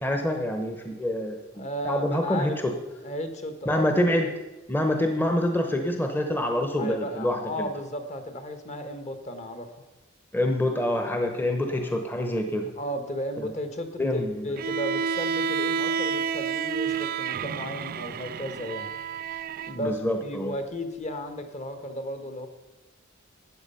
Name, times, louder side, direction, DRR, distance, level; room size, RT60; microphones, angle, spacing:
voice 1, 0.0-2.7 3.7-4.3 4.7-7.7 10.3-12.7 13.4-13.5 14.0-14.6 19.7-20.5, left 1 dB, 10° left, 4 dB, 0.9 m, -26 dB
voice 2, 1.5-2.6 3.0-3.8 6.8-9.8 12.8-18.9 19.7-22.5, equal, 35° left, 8 dB, 1.2 m, -34 dB
Bowed string instrument, 14.6-19.8, right 6 dB, 45° right, 0.3 m, -29 dB
12.5 x 8.9 x 5.6 m, 1.1 s
head